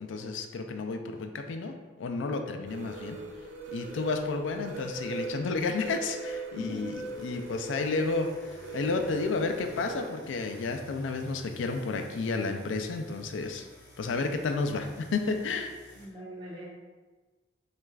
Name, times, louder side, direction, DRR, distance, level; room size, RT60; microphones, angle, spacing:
voice 1, 0.0-3.2 3.7-13.7 14.0-15.7, left 3 dB, 85° left, 6 dB, 0.4 m, -31 dB
sound 1, 2.7-10.1, right 3 dB, 90° right, 0.5 m, -40 dB
sound 2, 6.8-16.1, equal, 15° left, 1.3 m, -52 dB
voice 2, 15.9-16.6, left 1 dB, 25° right, -6 dB, 1.0 m, -41 dB
6.2 x 2.4 x 2.3 m, 1.3 s
head